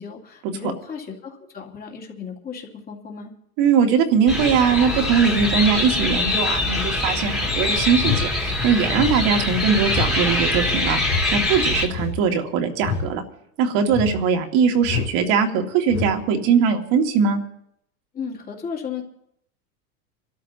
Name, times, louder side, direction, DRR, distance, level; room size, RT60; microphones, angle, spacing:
voice 1, 0.0-3.3 18.1-19.0, left 6 dB, 20° left, 0 dB, 2.8 m, -34 dB
voice 2, 3.6-11.0 11.3-13.2 13.6-17.4, right 6 dB, 45° right, 3 dB, 2.3 m, -20 dB
sound 1, 4.3-11.9, left 2 dB, ahead, 2.4 m, -23 dB
sound 2, 8.0-8.3 8.9-9.2 9.9-10.2 11.0-11.3 11.9-12.2 12.8-13.1 13.9-14.2 14.8-15.1 15.9-16.2, left 7 dB, 75° left, 4.2 m, -27 dB
27.5 x 13.0 x 2.9 m, 0.73 s
supercardioid pair, 130°, 44 cm